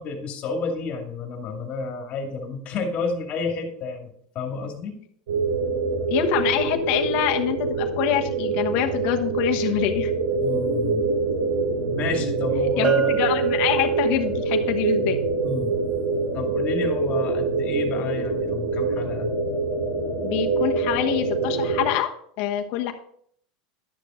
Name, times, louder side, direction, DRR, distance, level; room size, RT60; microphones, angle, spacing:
voice 1, 0.0-4.9 10.4-11.0 11.9-13.1 15.4-15.7 16.3-19.3, left 4 dB, 35° left, 3 dB, 2.3 m, -30 dB
sound 1, 5.3-21.9, right 3 dB, 85° right, 3.2 m, -25 dB
voice 2, 6.1-10.1 12.8-15.2 20.2-22.9, left 11 dB, 55° left, 4 dB, 1.2 m, -25 dB
Bell, 12.8-14.5, right 9 dB, 30° right, 0.9 m, -26 dB
11.5 x 6.8 x 3.8 m, 0.63 s
supercardioid pair, 140°, 4 cm